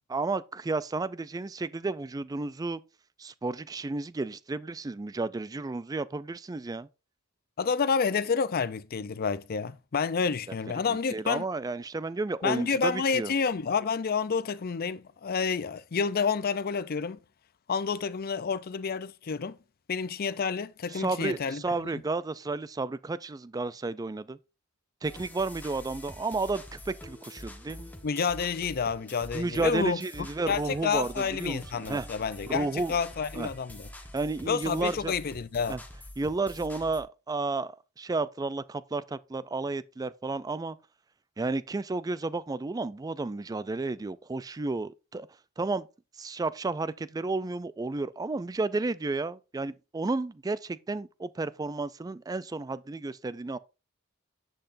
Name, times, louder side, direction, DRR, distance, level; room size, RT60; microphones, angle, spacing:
voice 1, 0.1-2.8 3.2-6.9 10.9-13.3 20.9-24.4 25.0-27.9 29.3-32.1 32.5-33.0 33.3-33.5 34.1-35.1 35.7-35.8 36.2-40.8 41.4-45.3 45.6-45.9 46.2-53.6, right 3 dB, 15° right, 0.3 m, -32 dB
voice 2, 7.6-11.4 12.4-17.2 17.7-19.6 19.9-21.9 28.0-30.0 30.5-33.9 34.5-35.8, left 5 dB, 45° left, 0.5 m, -29 dB
sound 1, 25.0-37.0, left 1 dB, 10° left, 1.2 m, -46 dB
10.5 x 7.8 x 2.6 m
head